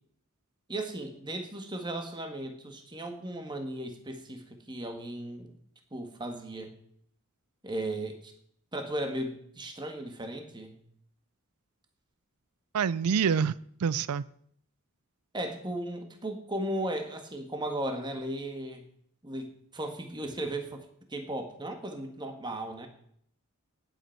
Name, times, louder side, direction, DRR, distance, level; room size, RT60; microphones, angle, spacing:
voice 1, 0.7-5.5 5.9-6.7 7.6-8.3 8.7-10.8 15.3-18.8 19.2-20.8 21.1-22.9, right 1 dB, 20° right, 1.5 m, -36 dB
voice 2, 12.7-13.5 13.8-14.2, right 6 dB, 85° right, 0.4 m, -26 dB
18.0 x 8.0 x 4.5 m
head